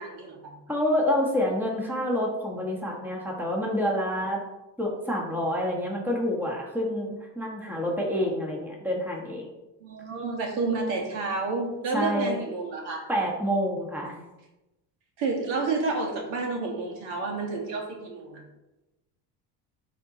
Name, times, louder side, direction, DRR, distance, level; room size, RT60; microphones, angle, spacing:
voice 1, 0.0-0.6 9.8-13.0 15.2-18.4, right 3 dB, 75° right, 0 dB, 2.4 m, -30 dB
voice 2, 0.7-4.4 4.8-9.5 11.9-12.3 13.1-14.2, equal, 5° right, -2 dB, 1.5 m, -27 dB
11.5 x 4.1 x 4.1 m, 1.0 s
cardioid pair, 140°, 46 cm